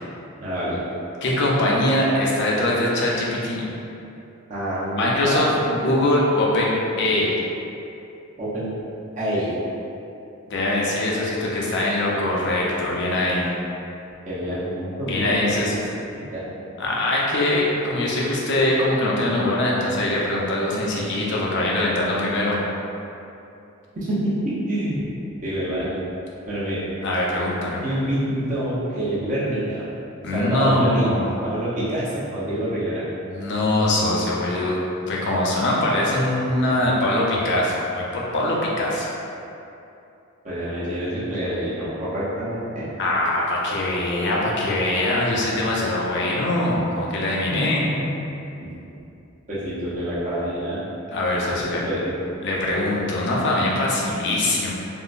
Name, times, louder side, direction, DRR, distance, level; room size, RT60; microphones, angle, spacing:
voice 1, 0.4-0.8 4.5-5.5 5.9-6.0 8.4-8.7 9.2-9.5 14.2-15.8 16.1-16.4 23.9-25.0 25.4-26.0 26.5-26.8 27.8-29.8 30.3-31.1 31.5-33.1 40.4-42.9 47.5-48.1 48.6-48.7 49.5-50.8 51.5-52.1, right 1 dB, 40° right, -10 dB, 0.7 m, -27 dB
voice 2, 1.2-3.7 5.0-6.7 7.0-7.4 10.5-13.5 15.1-15.8 16.8-22.6 27.0-27.8 30.2-31.3 33.3-34.7 35.1-39.1 43.0-47.8 51.1-52.0 52.4-54.7, left 1 dB, 60° left, -4 dB, 0.5 m, -22 dB
3.6 x 2.1 x 2.5 m, 2.7 s
head